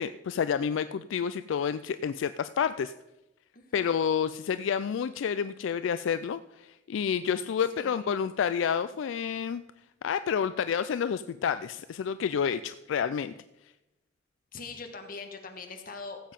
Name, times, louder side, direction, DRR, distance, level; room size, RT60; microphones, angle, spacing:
voice 1, 0.0-2.9 3.7-9.6 10.0-13.3, left 7 dB, 75° left, 13 dB, 0.3 m, -29 dB
voice 2, 3.5-3.9 7.7-8.2 14.5-16.2, left 4 dB, 45° left, 5 dB, 1.4 m, -42 dB
15.0 x 7.6 x 5.2 m, 0.98 s
head